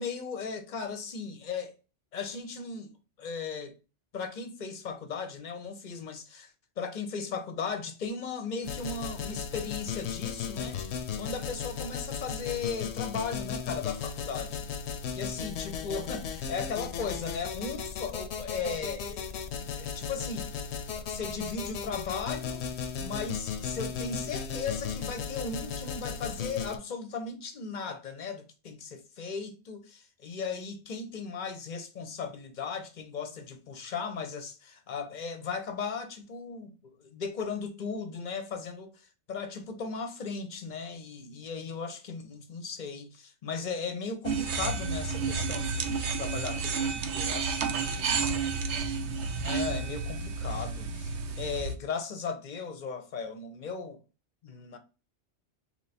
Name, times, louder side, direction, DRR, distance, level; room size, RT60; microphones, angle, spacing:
voice 1, 0.0-1.7 2.1-2.9 3.2-3.7 4.1-14.7 15.1-20.6 21.0-22.6 23.0-48.2 49.4-54.0 54.4-54.8, left 5 dB, 45° left, 0.8 m, -37 dB
sound 1, 8.6-26.8, left 7 dB, 70° left, 0.9 m, -36 dB
sound 2, 44.2-51.7, right 5 dB, 75° right, 0.9 m, -31 dB
3.3 x 3.0 x 4.2 m
omnidirectional pair, 1.2 m